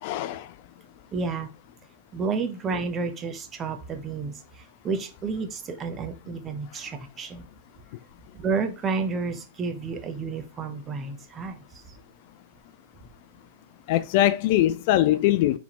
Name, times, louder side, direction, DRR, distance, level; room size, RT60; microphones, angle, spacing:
voice 1, 0.0-0.5 13.9-15.6, left 13 dB, 55° left, 0.3 m, -22 dB
voice 2, 1.1-1.5 2.1-4.3 4.8-7.4 8.3-11.6, right 4 dB, 25° right, 0.8 m, -30 dB
4.7 x 3.4 x 3.0 m
hypercardioid pair, 120°, 0 cm